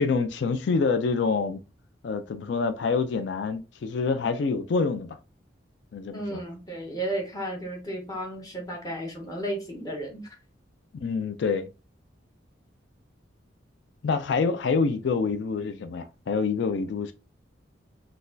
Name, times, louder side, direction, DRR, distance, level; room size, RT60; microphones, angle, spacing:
voice 1, 0.0-1.6 2.0-5.2 5.9-6.4 11.0-11.7 14.0-17.1, left 4 dB, 65° left, 0.4 m, -26 dB
voice 2, 6.1-10.3, right 1 dB, 20° left, 0.7 m, -33 dB
3.9 x 2.3 x 2.6 m
head